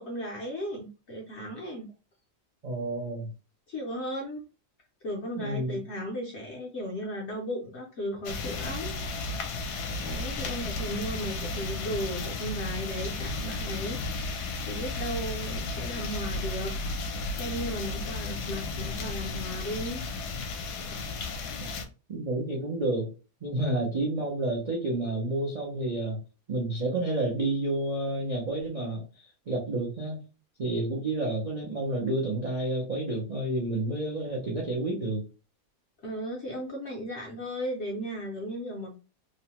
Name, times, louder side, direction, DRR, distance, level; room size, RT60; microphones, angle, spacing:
voice 1, 0.0-1.9 3.7-4.4 5.0-9.0 10.0-14.4 14.7-16.7 17.3-20.0 36.0-38.9, equal, 65° left, -1 dB, 0.7 m, -36 dB
voice 2, 2.6-3.3 5.4-5.8 21.6-21.7 22.1-23.1 23.4-26.2 26.5-29.0 29.5-30.2 30.6-35.2, right 2 dB, 70° right, -3 dB, 0.3 m, -30 dB
sound 1, 8.2-21.8, left 3 dB, 80° left, 1.1 m, -34 dB
3.0 x 2.1 x 2.9 m, 0.33 s
omnidirectional pair, 1.7 m